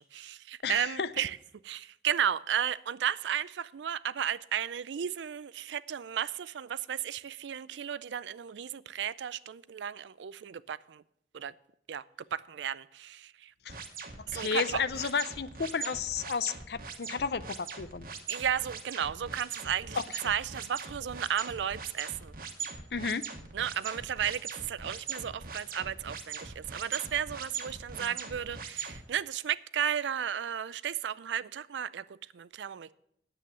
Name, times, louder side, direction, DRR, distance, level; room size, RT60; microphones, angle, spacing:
voice 1, 0.0-1.4 1.6-11.0 11.3-11.5 11.9-12.0 12.3-13.5 14.3-14.8 18.3-22.3 23.5-32.9, right 9 dB, 85° right, 18 dB, 0.4 m, -34 dB
voice 2, 0.6-1.1 13.6-13.7 14.2-18.1 19.9-20.2 22.9-23.3 28.0-28.1, left 5 dB, 65° left, 15 dB, 0.5 m, -32 dB
sound 1, 13.7-29.0, right 5 dB, 50° right, 1.2 m, -41 dB
10.0 x 7.8 x 7.0 m, 0.76 s
head